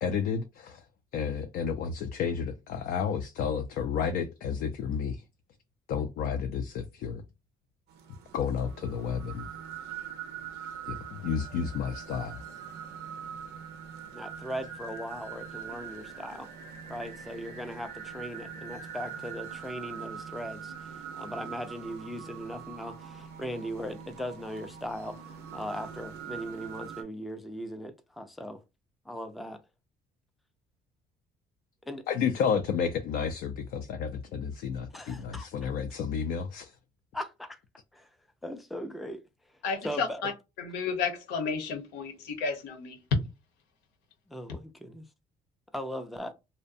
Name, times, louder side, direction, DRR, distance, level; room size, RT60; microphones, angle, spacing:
voice 1, 0.0-0.8 1.1-5.2 5.9-7.2 8.3-9.5 10.9-12.4 32.1-36.7, left 7 dB, 70° left, 0.4 m, -31 dB
sound 1, 7.9-27.0, right 7 dB, 75° right, 0.5 m, -43 dB
voice 2, 14.1-16.5 16.9-28.6 29.1-29.6 31.9-32.1 34.9-35.5 37.1-37.6 37.9-38.1 38.4-39.2 39.8-40.2 44.3-45.0 45.7-46.3, equal, ahead, 0.3 m, -39 dB
voice 3, 39.6-40.3 40.6-43.0, left 5 dB, 90° left, 0.9 m, -32 dB
2.6 x 2.1 x 2.5 m
cardioid pair, 110°, 17 cm